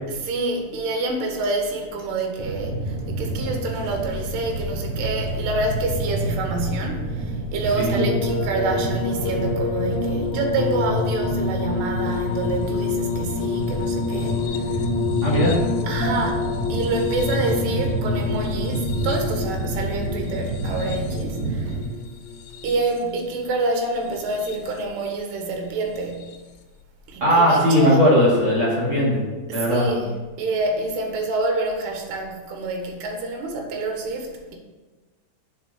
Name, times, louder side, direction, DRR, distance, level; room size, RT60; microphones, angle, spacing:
voice 1, 0.2-14.4 15.9-16.4 16.7-21.8 22.6-26.4 27.1-28.0 29.5-34.6, right 2 dB, 80° right, 2 dB, 3.2 m, -27 dB
sound 1, 2.4-21.8, right 3 dB, 60° right, 2.0 m, -29 dB
sound 2, 8.0-23.2 24.1-24.8 26.2-26.4, left 5 dB, 75° left, 2.2 m, -28 dB
voice 2, 15.2-15.5 27.2-29.2 29.5-29.9, equal, 40° right, -7 dB, 2.1 m, -18 dB
7.6 x 4.4 x 6.4 m, 1.3 s
omnidirectional pair, 4.7 m